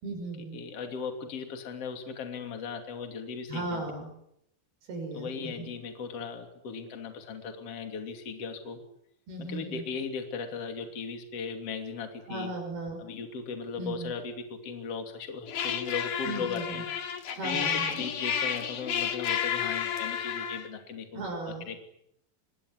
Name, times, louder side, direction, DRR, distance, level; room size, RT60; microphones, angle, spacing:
voice 1, 0.0-0.6 3.5-4.1 4.9-5.7 9.3-9.9 12.3-13.0 13.8-14.1 16.3-16.8 17.3-18.0 21.1-21.7, right 2 dB, 80° right, 3 dB, 7.8 m, -36 dB
voice 2, 0.5-3.8 5.1-8.8 9.4-12.5 13.0-16.9 17.4-21.8, left 5 dB, 40° left, 5 dB, 3.6 m, -37 dB
sound 1, 15.5-20.7, left 8 dB, 60° left, 3.7 m, -31 dB
25.5 x 22.5 x 9.9 m, 0.76 s
omnidirectional pair, 4.4 m